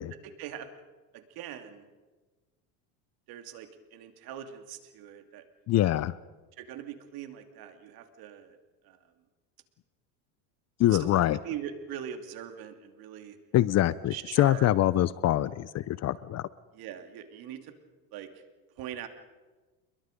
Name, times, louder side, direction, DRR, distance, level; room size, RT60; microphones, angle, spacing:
voice 1, 0.2-0.7 1.1-1.8 3.3-5.4 5.7-5.8 6.6-8.6 8.8-9.0 10.9-13.4 14.1-14.7 16.7-17.7 18.1-18.3 18.8-19.1, right 10 dB, 60° right, 7 dB, 2.7 m, -41 dB
voice 2, 5.7-6.2 10.8-11.4 13.5-16.4, left 13 dB, 40° left, 19 dB, 0.6 m, -24 dB
28.0 x 22.0 x 5.2 m, 1.3 s
supercardioid pair, 115°, 42 cm